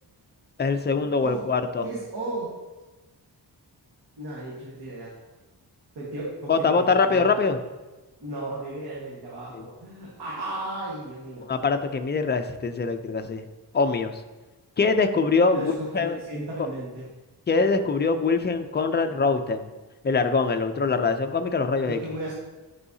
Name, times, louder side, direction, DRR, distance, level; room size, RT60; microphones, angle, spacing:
voice 1, 0.6-1.9 6.5-7.6 9.5-9.7 11.4-13.5 13.7-14.2 14.8-16.2 17.5-19.7 20.0-22.0, left 4 dB, 25° left, 7 dB, 0.4 m, -23 dB
voice 2, 1.2-1.5 1.8-2.5 4.2-5.1 5.9-7.3 8.2-11.5 15.5-17.0 21.8-22.3, right 2 dB, 70° right, -5 dB, 1.6 m, -35 dB
9.7 x 5.6 x 2.7 m, 1.2 s
wide cardioid pair, 145°, 42 cm